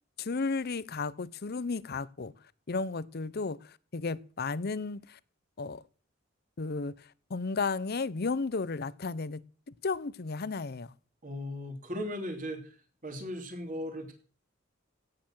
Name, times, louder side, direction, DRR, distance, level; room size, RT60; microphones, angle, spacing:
voice 1, 0.2-2.3 2.7-5.2 5.6-5.8 6.6-10.9, left 4 dB, 50° left, 19 dB, 0.7 m, -34 dB
voice 2, 11.2-12.6 13.0-14.1, equal, 45° right, 4 dB, 3.2 m, -37 dB
17.0 x 6.8 x 7.6 m, 0.41 s
head